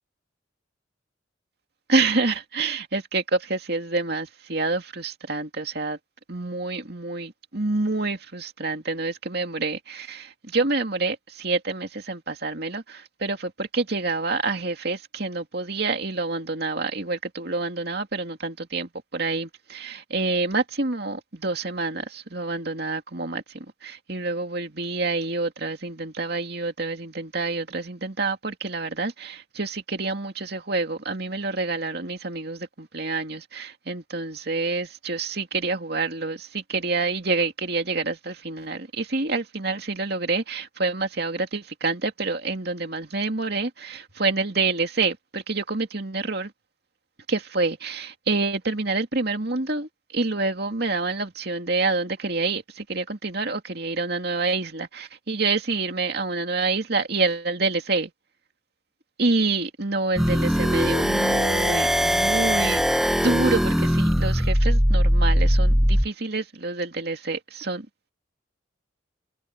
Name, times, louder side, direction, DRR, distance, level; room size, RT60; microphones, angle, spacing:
voice 1, 1.9-6.0 6.3-46.5 47.3-58.1 59.2-67.9, right 3 dB, 55° right, 2.5 m, -27 dB
sound 1, 60.2-66.1, equal, ahead, 1.2 m, -20 dB
head